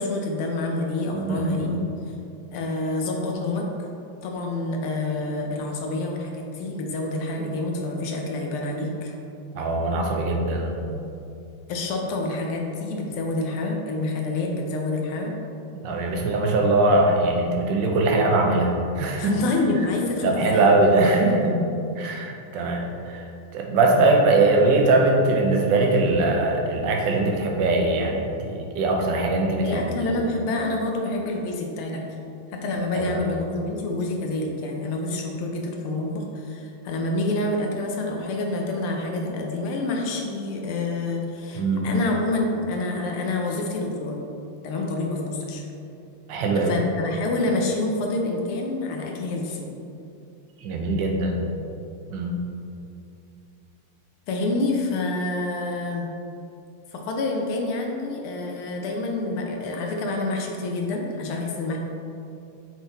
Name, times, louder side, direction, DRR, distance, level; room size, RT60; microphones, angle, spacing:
voice 1, 0.0-1.8 2.5-3.7 4.2-9.2 11.7-15.4 19.2-20.7 29.6-32.0 32.5-44.2 44.6-45.6 46.6-49.7 54.3-56.1 56.9-61.8, left 2 dB, 80° left, 1 dB, 1.7 m, -27 dB
voice 2, 1.1-1.8 9.5-10.8 15.8-19.3 19.7-19.8 20.2-21.6 22.0-23.2 23.5-30.1 32.9-33.3 41.6-41.9 46.3-46.9 50.6-51.4 52.1-52.4, right 2 dB, 65° right, 1 dB, 1.3 m, -21 dB
7.1 x 4.0 x 4.0 m, 2.6 s
omnidirectional pair, 2.4 m